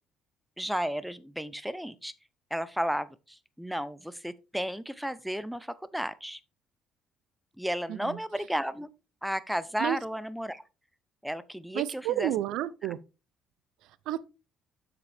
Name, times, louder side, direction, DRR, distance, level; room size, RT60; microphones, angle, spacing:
voice 1, 0.6-2.1 2.5-6.4 7.6-8.9 9.2-10.6 11.2-12.3 12.8-12.9, equal, ahead, 0.6 m, -33 dB
voice 2, 11.7-13.0 14.1-14.3, right 13 dB, 80° right, 0.5 m, -30 dB
7.2 x 6.7 x 3.4 m
cardioid pair, 100°, 0 cm